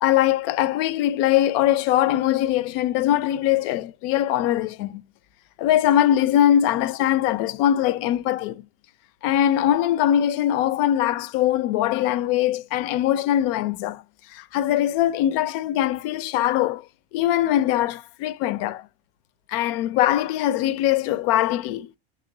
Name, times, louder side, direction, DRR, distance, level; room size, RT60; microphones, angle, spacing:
voice 1, 0.0-5.0 5.6-8.6 9.2-14.0 14.3-16.8 17.1-18.9 19.5-21.9, left 12 dB, 60° left, 0.5 m, -21 dB
6.4 x 3.0 x 2.6 m
hypercardioid pair, 95°, 34 cm